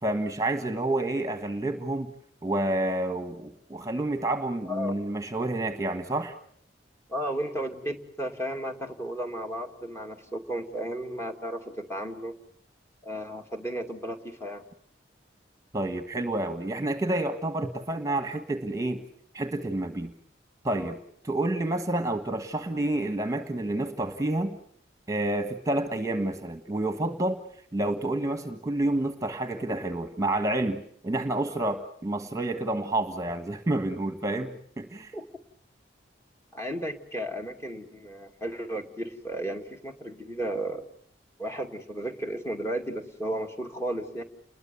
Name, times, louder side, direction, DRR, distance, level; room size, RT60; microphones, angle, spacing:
voice 1, 0.0-2.1 2.4-6.3 15.7-19.0 19.3-20.1 20.6-21.0 21.2-24.6 25.1-27.4 27.7-35.1, right 2 dB, 20° right, 8 dB, 1.5 m, -29 dB
voice 2, 4.6-5.1 7.1-12.3 13.0-14.6 20.8-20.9 35.1-35.3 36.5-40.8 41.4-44.2, right 1 dB, 15° left, 4 dB, 2.6 m, -34 dB
30.0 x 21.5 x 7.1 m, 0.63 s
head